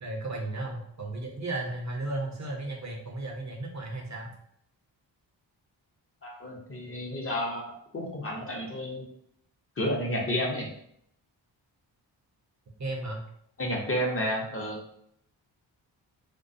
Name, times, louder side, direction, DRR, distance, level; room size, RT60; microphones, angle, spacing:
voice 1, 0.0-4.3 12.8-13.2, right 2 dB, 35° right, 0 dB, 0.6 m, -34 dB
voice 2, 6.2-9.0 9.8-10.7 13.6-14.8, equal, 30° left, -1 dB, 0.7 m, -31 dB
2.2 x 2.2 x 2.6 m, 0.73 s
cardioid pair, 40°, 47 cm